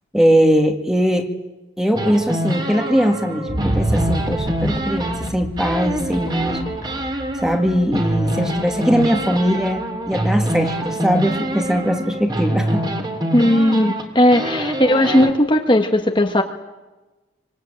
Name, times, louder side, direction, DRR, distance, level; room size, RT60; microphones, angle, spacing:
voice 1, 0.1-1.3 1.8-6.6 7.4-12.8, equal, 5° right, 4 dB, 2.1 m, -20 dB
sound 1, 2.0-5.3 5.6-15.3, right 1 dB, 20° right, 2.7 m, -25 dB
sound 2, 3.5-11.3 11.8-11.9, right 1 dB, 45° right, 1.3 m, -31 dB
voice 2, 13.3-16.4, left 1 dB, 25° left, 3 dB, 1.4 m, -16 dB
25.0 x 25.0 x 9.0 m, 1.1 s
head